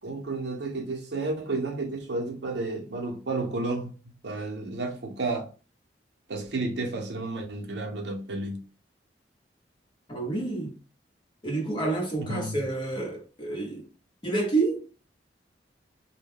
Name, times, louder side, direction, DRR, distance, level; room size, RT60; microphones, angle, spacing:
voice 1, 0.0-3.9 4.2-5.5 6.3-8.6 12.1-12.6, right 2 dB, 70° right, 0.7 m, -32 dB
voice 2, 10.1-10.8 11.4-13.9 14.2-14.9, right 3 dB, 25° left, 0.8 m, -29 dB
2.2 x 2.2 x 3.4 m
head